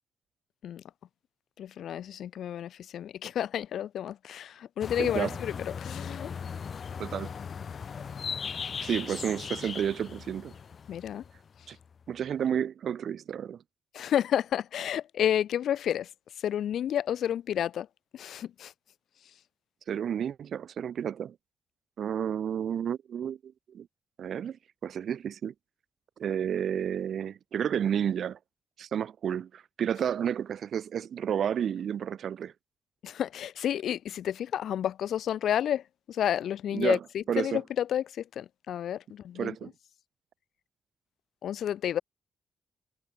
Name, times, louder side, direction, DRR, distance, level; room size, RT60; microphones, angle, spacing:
voice 1, 1.6-6.3 10.9-11.2 13.9-16.1 16.4-17.9 18.1-18.7 33.0-39.7 41.4-42.0, left 10 dB, 75° left, 0.8 m, -31 dB
sound 1, 4.8-11.9, left 6 dB, 50° left, 1.5 m, -38 dB
voice 2, 5.0-5.4 7.0-7.3 8.8-10.5 11.7-11.8 12.1-13.6 19.9-21.3 22.0-23.9 24.2-24.6 24.8-25.5 26.2-28.4 28.8-32.5 36.7-37.0 37.3-37.6 39.4-39.7, right 8 dB, 65° right, 4.3 m, -31 dB
cardioid pair, 110°, 0 cm